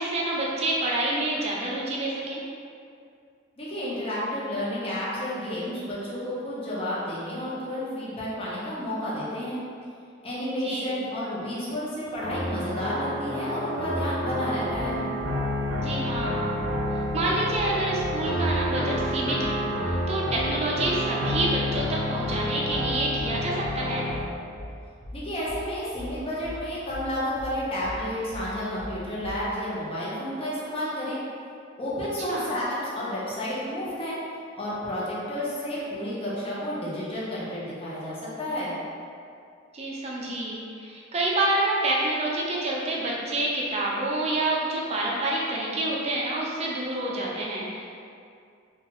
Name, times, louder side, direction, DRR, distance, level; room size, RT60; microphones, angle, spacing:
voice 1, 0.0-2.4 10.6-10.9 15.8-16.5 16.9-24.1 32.3-32.5 39.7-47.9, right 2 dB, 30° right, -4 dB, 0.4 m, -28 dB
voice 2, 3.6-9.6 10.2-15.0 25.1-31.2 31.8-34.2 34.6-38.7, left 1 dB, 30° left, -8 dB, 0.6 m, -31 dB
sound 1, 12.2-24.2, equal, 65° right, 0.8 m, -29 dB
sound 2, 14.7-29.5, left 1 dB, 85° left, 0.8 m, -40 dB
2.8 x 2.3 x 2.8 m, 2.4 s
head